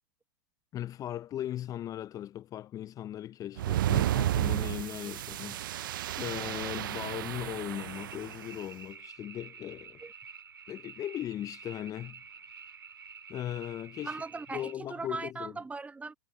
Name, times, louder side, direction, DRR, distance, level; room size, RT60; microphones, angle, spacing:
voice 1, 0.7-5.9 6.2-10.0 10.7-12.2 13.3-14.2 14.5-15.5, left 12 dB, 30° left, 0.7 m, -38 dB
sound 1, 3.6-8.5, right 13 dB, 70° right, 0.6 m, -32 dB
sound 2, 7.7-14.7, right 6 dB, 85° right, 3.4 m, -49 dB
voice 2, 14.0-16.1, right 3 dB, 10° right, 1.4 m, -39 dB
hypercardioid pair, 95°, 12 cm